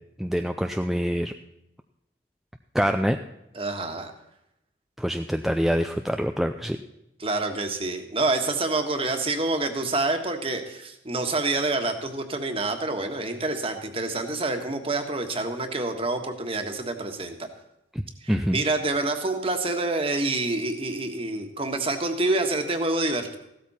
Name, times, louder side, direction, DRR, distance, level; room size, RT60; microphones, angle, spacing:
voice 1, 0.2-1.3 2.7-3.2 5.0-6.8 17.9-18.6, equal, ahead, 5 dB, 0.4 m, -25 dB
voice 2, 3.5-4.1 7.2-17.3 18.2-23.4, right 2 dB, 30° right, 5 dB, 1.6 m, -27 dB
15.5 x 13.0 x 4.3 m, 0.85 s
head